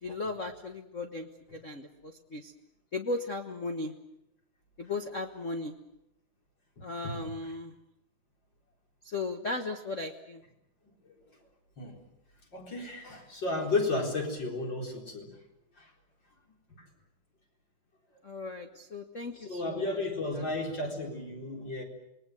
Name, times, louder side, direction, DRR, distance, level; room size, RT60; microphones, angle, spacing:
voice 1, 0.0-2.5 2.9-3.9 4.8-5.7 6.8-7.7 9.0-10.4 18.2-19.9 20.3-20.5, left 3 dB, 90° left, 6 dB, 0.6 m, -36 dB
voice 2, 12.5-15.3 19.4-21.8, left 2 dB, 35° left, 1 dB, 4.8 m, -33 dB
27.5 x 21.0 x 7.8 m, 0.87 s
omnidirectional pair, 3.7 m